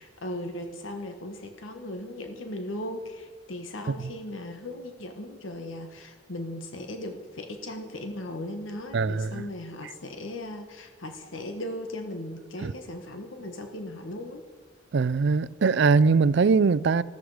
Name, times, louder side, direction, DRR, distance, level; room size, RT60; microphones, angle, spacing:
voice 1, 0.0-14.4, left 1 dB, 80° left, 1.4 m, -37 dB
voice 2, 8.9-9.4 12.6-12.7 14.9-17.0, right 4 dB, 60° right, 0.4 m, -21 dB
14.0 x 14.0 x 4.9 m
head